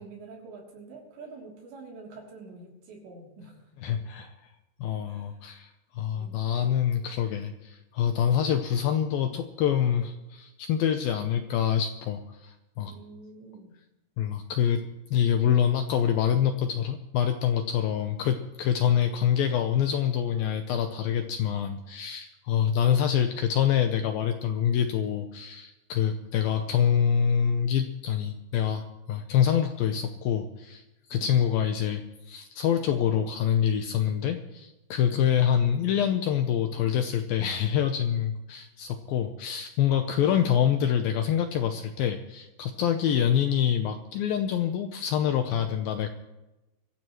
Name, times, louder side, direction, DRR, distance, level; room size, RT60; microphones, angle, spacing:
voice 1, 0.0-3.6 3.9-4.0 5.1-5.4 6.2-6.4 12.9-13.8 31.1-31.4 35.0-35.9 40.1-40.9, right 4 dB, 80° right, -1 dB, 5.4 m, -47 dB
voice 2, 3.8-4.3 4.8-12.9 14.2-14.8 15.1-30.8 31.1-46.1, left 9 dB, 80° left, 6 dB, 2.2 m, -26 dB
23.0 x 15.0 x 3.1 m, 0.99 s
omnidirectional pair, 5.0 m